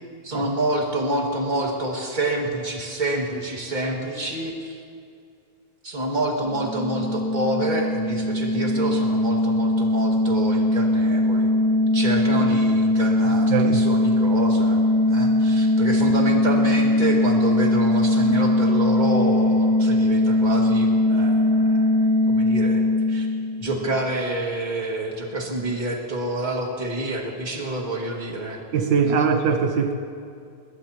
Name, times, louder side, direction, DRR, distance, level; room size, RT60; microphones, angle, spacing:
voice 1, 0.2-4.8 5.8-11.6 11.9-22.0 22.3-23.3 23.6-28.6 29.0-29.3, right 1 dB, 25° right, 0 dB, 1.9 m, -28 dB
sound 1, 6.4-23.9, left 1 dB, 5° left, 1.4 m, -20 dB
voice 2, 28.7-29.9, right 6 dB, 75° right, 5 dB, 1.5 m, -21 dB
21.0 x 21.0 x 2.9 m, 2.4 s
omnidirectional pair, 2.0 m